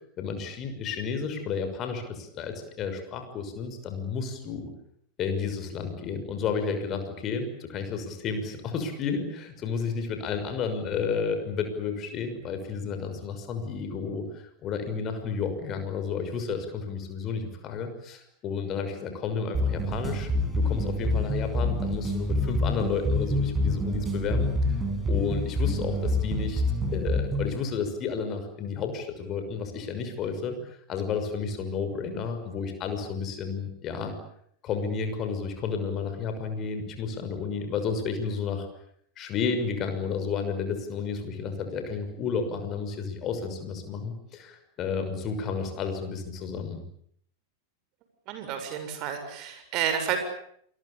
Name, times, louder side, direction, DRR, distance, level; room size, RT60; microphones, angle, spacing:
voice 1, 0.2-4.7 5.2-24.5 25.1-26.6 26.9-34.2 34.6-38.7 39.2-46.8, left 5 dB, 30° left, 7 dB, 6.2 m, -32 dB
sound 1, 19.5-27.6, left 1 dB, 15° right, 7.0 m, -27 dB
voice 2, 48.3-50.2, right 8 dB, 40° right, 8 dB, 7.3 m, -30 dB
28.0 x 22.0 x 8.6 m, 0.69 s
figure-of-eight pair, 90°, 0 cm